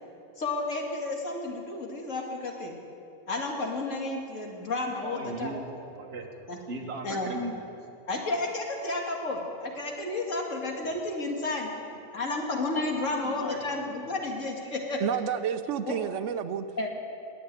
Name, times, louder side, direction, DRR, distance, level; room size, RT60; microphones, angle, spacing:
voice 1, 0.4-2.8 3.3-5.6 6.5-6.6 7.0-7.3 8.1-11.7 12.1-15.0 15.8-15.9 16.8-16.9, left 2 dB, 55° left, 0 dB, 2.4 m, -32 dB
voice 2, 5.0-6.3 6.7-7.5 13.2-13.6, right 2 dB, 45° right, 1 dB, 1.8 m, -37 dB
voice 3, 15.0-16.7, right 8 dB, 60° right, 9 dB, 1.0 m, -30 dB
21.0 x 7.9 x 8.9 m, 2.7 s
omnidirectional pair, 1.6 m